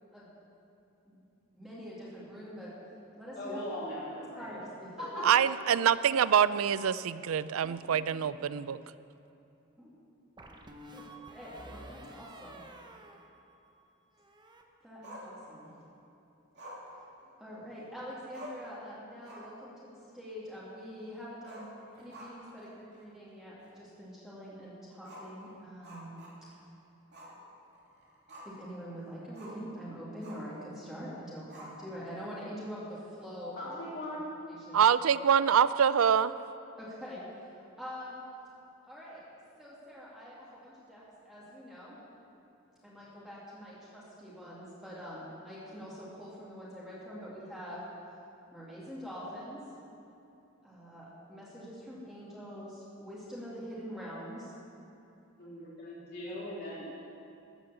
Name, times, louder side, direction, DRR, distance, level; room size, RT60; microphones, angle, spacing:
voice 1, 1.5-2.7 3.2-3.6 4.3-5.4 9.8-9.9 10.5-10.6 10.9-11.0 11.3-12.6 14.8-15.7 17.4-21.7 22.0-26.1 26.4-26.5 28.4-33.6 34.5-34.8 36.8-37.2 37.5-38.2 38.8-39.2 39.6-42.0 42.8-47.8 48.5-49.6 50.6-54.5 56.3-56.4, equal, ahead, -9 dB, 2.5 m, -44 dB
voice 2, 3.3-4.5 5.1-5.2 33.6-34.3 55.4-57.0, left 1 dB, 50° left, -6 dB, 2.8 m, -40 dB
voice 3, 5.2-8.8 34.7-36.3, right 8 dB, 80° right, 16 dB, 0.4 m, -25 dB
sound 1, 7.6-8.5 10.4-13.9 14.2-14.6, right 1 dB, 20° right, 0.9 m, -51 dB
Growling, 15.0-15.8 16.6-17.8 18.1-18.2 18.3-18.8 19.1-19.6 19.9-20.0 21.4-22.6 22.9-23.0 23.6-23.7 25.0-26.6 27.1-27.4 27.7-28.7 29.3-29.7 30.2-30.6 31.5-32.1, equal, 55° right, 2.8 m, -49 dB
14.5 x 8.7 x 7.0 m, 2.8 s
head